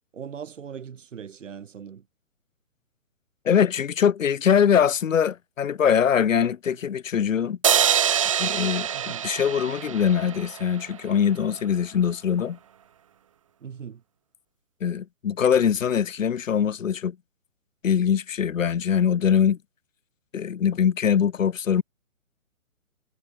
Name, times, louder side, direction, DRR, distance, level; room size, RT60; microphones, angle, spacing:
voice 1, 0.1-2.0 8.9-9.3 13.6-14.0, right 7 dB, 60° right, 7.1 m, -39 dB
voice 2, 3.5-7.6 8.4-12.6 14.8-17.2 17.8-19.6 20.3-21.8, left 8 dB, 65° left, 1.7 m, -22 dB
sound 1, 7.6-11.0, right 9 dB, 25° right, 0.5 m, -25 dB
hypercardioid pair, 150°, 42 cm